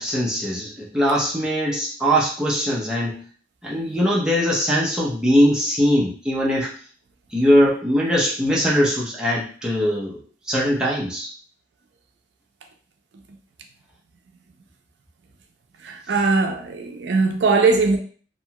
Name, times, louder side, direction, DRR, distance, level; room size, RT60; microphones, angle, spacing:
voice 1, 0.0-3.2 3.6-6.7 7.3-11.3, equal, 5° right, -5 dB, 0.6 m, -21 dB
voice 2, 15.8-18.0, right 4 dB, 75° right, 4 dB, 0.4 m, -20 dB
2.8 x 2.3 x 2.8 m, 0.42 s
head